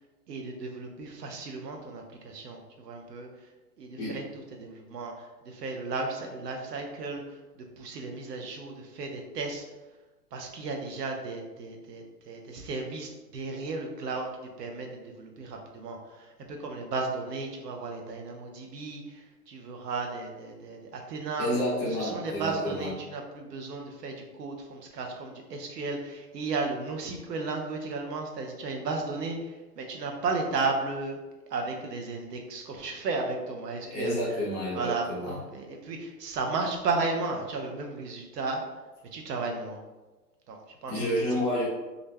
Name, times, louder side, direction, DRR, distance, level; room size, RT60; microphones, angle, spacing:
voice 1, 0.3-3.3 3.8-9.7 10.3-14.3 14.6-21.5 21.9-31.2 31.5-34.4 34.7-38.6 39.1-39.8 40.5-41.1, right 3 dB, 80° right, 2 dB, 0.7 m, -34 dB
voice 2, 21.4-22.9 33.8-35.4 40.9-41.7, equal, 15° left, -7 dB, 0.5 m, -29 dB
2.5 x 2.1 x 3.1 m, 1.2 s
hypercardioid pair, 125°, 47 cm